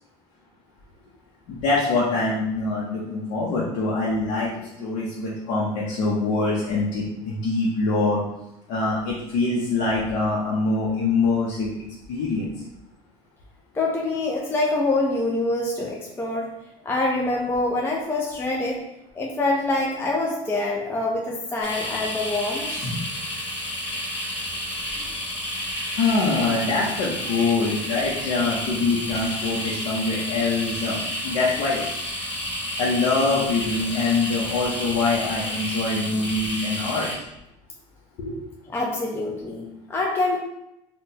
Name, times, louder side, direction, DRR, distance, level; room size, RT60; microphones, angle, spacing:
voice 1, 1.5-4.5 4.8-8.2 8.7-11.7 12.1-12.5 25.9-31.8 32.8-37.1 38.2-38.4, left 3 dB, 65° left, -6 dB, 0.7 m, -24 dB
voice 2, 13.7-16.5 16.8-18.8 19.1-22.9 38.7-40.4, left 2 dB, 15° left, -2 dB, 0.5 m, -25 dB
sound 1, 21.6-37.1, equal, 45° left, 1.3 m, -31 dB
4.2 x 2.2 x 2.7 m, 0.86 s
supercardioid pair, 120°, 14 cm